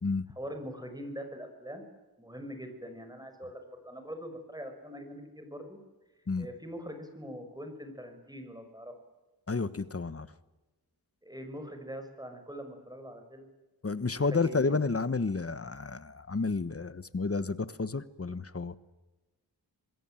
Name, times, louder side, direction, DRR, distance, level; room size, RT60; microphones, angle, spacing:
voice 1, 0.4-1.8 2.2-5.8 6.4-8.9 11.2-13.5 14.1-14.8, equal, 10° right, 6 dB, 5.6 m, -43 dB
voice 2, 9.5-10.3 13.8-18.8, left 4 dB, 35° left, 15 dB, 1.2 m, -31 dB
27.0 x 21.0 x 9.0 m, 1.1 s
wide cardioid pair, 95°, 40 cm